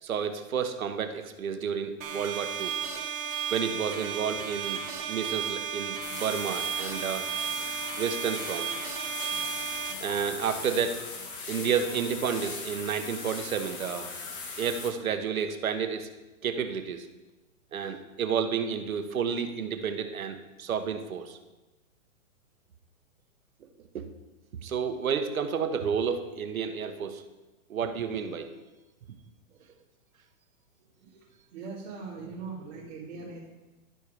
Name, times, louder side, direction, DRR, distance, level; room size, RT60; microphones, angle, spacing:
voice 1, 0.0-2.7 3.5-7.3 8.0-8.7 10.0-11.0 11.5-14.1 14.6-16.1 16.4-17.1 17.7-21.4 23.9-24.1 24.6-27.2 27.7-28.5, right 7 dB, 90° right, 7 dB, 1.1 m, -31 dB
sound 1, 2.0-9.9, right 8 dB, 35° right, 1.1 m, -34 dB
sound 2, 6.0-14.9, left 4 dB, 40° left, 1.6 m, -39 dB
voice 2, 30.8-31.3 31.5-33.4, right 4 dB, 55° right, -8 dB, 2.4 m, -41 dB
11.5 x 4.6 x 4.9 m, 1.1 s
hypercardioid pair, 150°, 40 cm